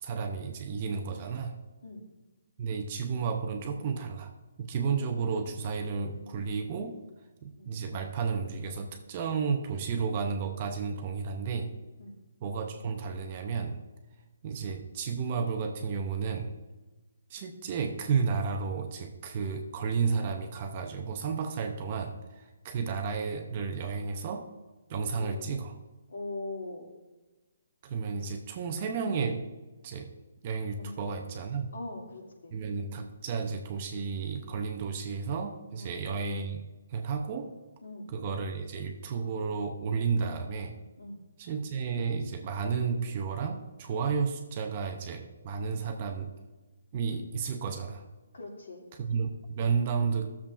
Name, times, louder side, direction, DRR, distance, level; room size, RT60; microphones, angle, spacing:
voice 1, 0.0-1.6 2.6-4.3 4.6-7.0 7.4-11.8 12.4-13.8 14.4-16.6 17.3-24.5 24.9-25.8 27.8-29.5 29.8-30.1 30.4-31.7 32.5-36.6 36.9-37.5 38.1-40.7 41.4-46.3 46.9-48.0 49.0-50.3, right 5 dB, 30° right, 4 dB, 0.5 m, -32 dB
voice 2, 25.2-25.5 26.1-26.9 30.8-31.0 31.7-32.6 35.7-36.0 37.8-38.1 41.0-41.2 48.3-48.9, left 2 dB, 75° left, -1 dB, 2.3 m, -41 dB
15.0 x 7.1 x 2.5 m, 1.2 s
hypercardioid pair, 170°, 0 cm